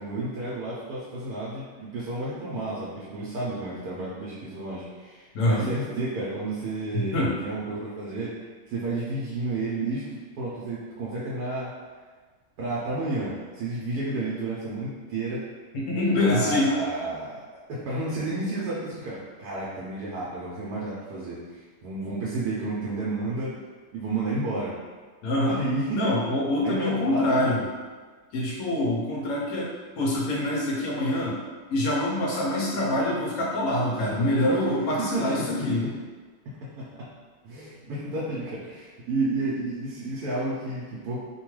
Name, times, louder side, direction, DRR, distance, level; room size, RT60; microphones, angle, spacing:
voice 1, 0.0-11.7 12.6-15.4 16.2-17.4 17.7-23.5 23.9-24.7 25.4-26.1 26.6-27.4 34.0-34.6 35.0-35.5 35.8-35.9 36.5-37.1 37.4-41.2, right 2 dB, 90° right, -7 dB, 1.2 m, -31 dB
voice 2, 5.3-5.7 6.9-7.3 15.7-16.7 25.2-25.6 25.9-27.6 28.3-31.4 31.7-35.8, left 1 dB, 75° left, -4 dB, 1.1 m, -25 dB
3.0 x 2.3 x 3.0 m, 1.5 s
omnidirectional pair, 1.6 m